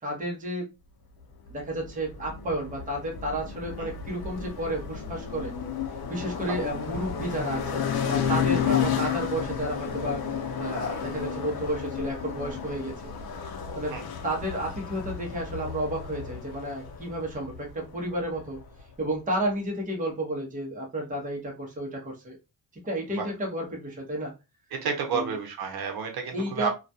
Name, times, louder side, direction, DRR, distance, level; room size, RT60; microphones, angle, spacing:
voice 1, 0.0-0.7 1.5-5.5 6.1-10.2 10.6-13.0 13.7-13.9 14.2-18.6 19.0-22.4 22.8-24.3 25.1-25.3 26.3-26.7, right 1 dB, 20° right, -1 dB, 0.7 m, -31 dB
sound 1, 1.5-18.9, left 7 dB, 70° left, 0.6 m, -32 dB
voice 2, 24.7-26.7, right 5 dB, 70° right, 3 dB, 0.7 m, -31 dB
2.2 x 2.2 x 2.6 m, 0.27 s
wide cardioid pair, 175°, 38 cm